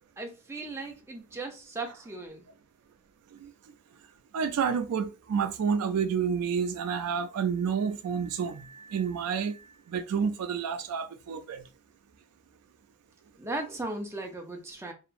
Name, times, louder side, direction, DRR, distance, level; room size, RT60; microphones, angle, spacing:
voice 1, 0.2-2.4 13.4-14.9, right 2 dB, 10° right, 0.5 m, -37 dB
voice 2, 4.3-9.6 9.9-11.6, right 6 dB, 90° right, 0.4 m, -29 dB
2.8 x 2.4 x 2.5 m
head